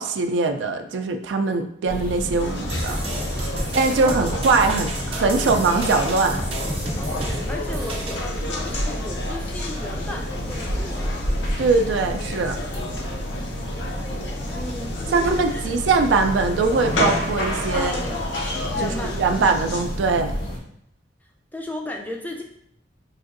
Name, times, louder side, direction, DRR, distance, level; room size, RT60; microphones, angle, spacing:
voice 1, 0.0-3.0 3.7-6.4 11.6-12.6 15.1-18.0 18.8-20.4, right 4 dB, 80° right, 7 dB, 0.3 m, -22 dB
sound 1, 1.9-20.6, equal, 85° left, 1.0 m, -29 dB
sound 2, 2.4-19.8, left 2 dB, 70° left, 0.5 m, -34 dB
sound 3, 2.7-8.2, right 2 dB, 30° right, 0.6 m, -32 dB
voice 2, 7.0-11.2 14.4-15.8 17.7-18.2 18.7-19.4 21.5-22.4, left 1 dB, 10° left, 1 dB, 0.3 m, -35 dB
4.7 x 2.6 x 2.5 m, 0.74 s
head